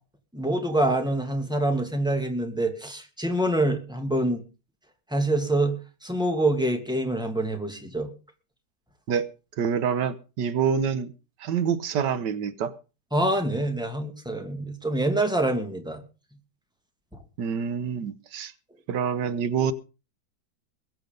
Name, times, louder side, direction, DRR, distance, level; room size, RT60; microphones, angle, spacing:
voice 1, 0.3-4.4 5.1-8.1 13.1-16.0, right 1 dB, ahead, 2.4 m, -26 dB
voice 2, 9.6-11.1 11.4-12.7 17.4-18.5 18.9-19.7, right 7 dB, 90° right, 1.7 m, -26 dB
21.5 x 8.3 x 5.3 m
omnidirectional pair, 1.8 m